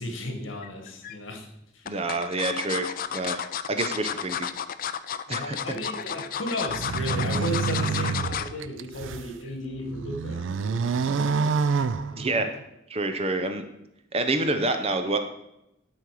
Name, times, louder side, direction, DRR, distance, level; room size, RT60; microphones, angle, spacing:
voice 1, 0.0-2.0 5.3-12.2, left 1 dB, 80° left, 4 dB, 1.6 m, -35 dB
sound 1, 0.6-1.2 1.9-8.6 9.0-9.2 9.5-9.6, left 8 dB, 45° left, 0.4 m, -32 dB
voice 2, 1.8-3.4 3.7-4.5 5.3-5.6 12.1-12.5 12.9-13.6 14.1-15.2, right 2 dB, 30° right, 7 dB, 0.8 m, -27 dB
sound 2, 6.7-9.3 9.8-12.6, right 5 dB, 70° right, 0.4 m, -28 dB
12.0 x 4.3 x 4.8 m, 0.83 s
head